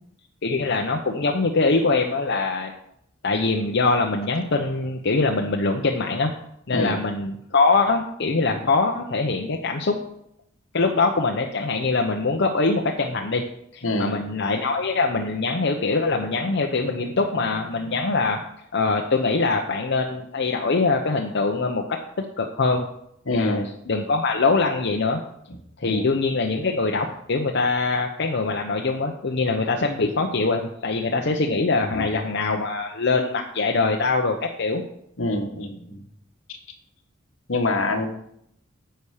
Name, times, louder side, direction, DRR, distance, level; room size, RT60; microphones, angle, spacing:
voice 1, 0.4-2.7 3.2-6.3 6.7-10.0 10.7-13.4 13.7-18.4 18.7-21.8 22.4-22.9 23.3-25.2 25.8-34.8, left 3 dB, 60° left, 2 dB, 0.8 m, -23 dB
voice 2, 6.7-7.0 13.8-14.2 23.3-23.7 25.8-26.1 31.9-32.0 35.2-36.0 37.5-38.1, left 2 dB, 80° left, 5 dB, 1.4 m, -25 dB
10.0 x 7.0 x 4.9 m, 0.74 s
head